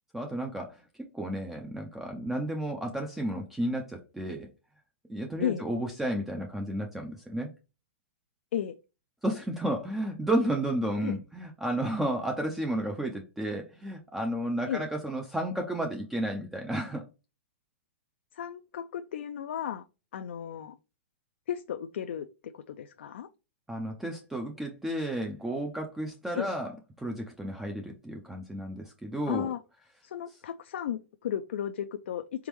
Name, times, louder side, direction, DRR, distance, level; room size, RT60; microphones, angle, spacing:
voice 1, 0.1-0.8 1.1-4.5 5.1-7.5 9.2-17.1 23.7-26.7 27.0-29.5, right 1 dB, 5° right, 0.4 m, -32 dB
voice 2, 18.3-19.8 20.1-20.7 21.5-22.3 22.5-23.3 26.3-26.5 29.3-29.6 30.0-32.5, left 10 dB, 75° left, 0.4 m, -34 dB
4.0 x 3.5 x 3.1 m
hypercardioid pair, 155°, 6 cm